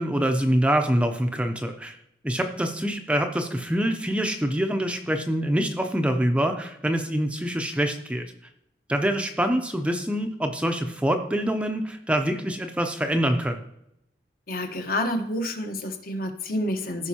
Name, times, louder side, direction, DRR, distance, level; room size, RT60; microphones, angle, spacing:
voice 1, 0.0-2.0 2.2-8.3 8.9-13.6, equal, 5° right, 5 dB, 0.5 m, -25 dB
voice 2, 14.5-17.1, left 1 dB, 50° left, 5 dB, 1.0 m, -28 dB
14.5 x 5.2 x 2.8 m, 0.79 s
head